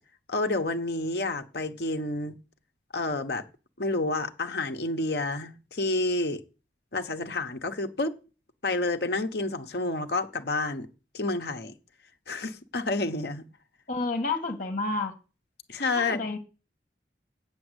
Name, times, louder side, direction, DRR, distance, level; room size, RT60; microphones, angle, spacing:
voice 1, 0.3-2.4 2.9-3.4 3.8-6.4 6.9-8.2 8.6-10.9 11.1-11.7 12.3-13.5 15.7-16.2, left 2 dB, 65° left, 1.2 m, -29 dB
voice 2, 13.9-15.1 16.0-16.4, left 3 dB, 45° left, 1.9 m, -30 dB
8.6 x 7.3 x 8.0 m
head